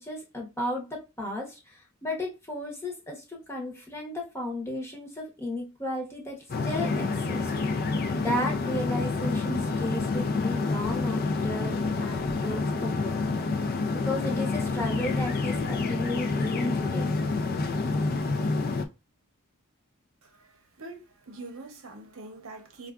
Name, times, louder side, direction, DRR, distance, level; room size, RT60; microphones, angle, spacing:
voice 1, 0.0-7.5 8.1-13.2 13.9-17.1, left 1 dB, 10° left, 0.8 m, -34 dB
sound 1, 6.5-18.8, left 3 dB, 45° left, 0.4 m, -28 dB
voice 2, 20.2-22.9, right 2 dB, 65° right, 0.8 m, -44 dB
4.6 x 2.3 x 2.3 m
head